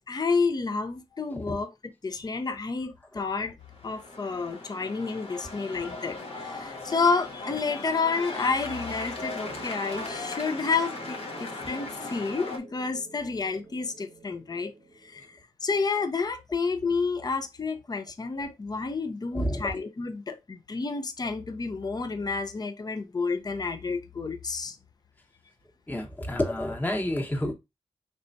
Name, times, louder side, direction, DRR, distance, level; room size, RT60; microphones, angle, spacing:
voice 1, 0.1-1.7 2.0-3.5 3.8-14.7 15.0-24.8, left 4 dB, 35° left, 0.6 m, -30 dB
sound 1, 3.7-12.6, left 2 dB, 60° left, 1.0 m, -38 dB
sound 2, 9.2-15.4, right 2 dB, 45° right, 0.7 m, -49 dB
voice 2, 19.3-19.7 25.9-27.5, left 1 dB, 15° left, 1.1 m, -30 dB
4.2 x 3.3 x 2.6 m
cardioid pair, 55°, 11 cm